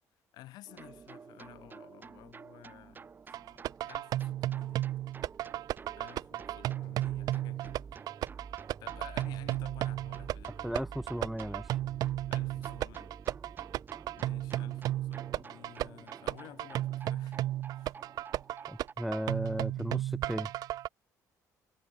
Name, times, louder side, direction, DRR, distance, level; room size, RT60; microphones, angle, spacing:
voice 1, 0.3-4.9 6.0-7.8 8.8-10.8 12.3-13.2 14.2-17.4 17.7-18.0, left 16 dB, 85° left, 4.9 m, -54 dB
sound 1, 0.7-18.9, right 5 dB, 30° right, 1.9 m, -49 dB
sound 2, 3.3-20.9, right 14 dB, 70° right, 0.8 m, -34 dB
voice 2, 10.6-11.7 18.7-20.5, equal, ahead, 0.5 m, -35 dB
cardioid pair, 130°, 7 cm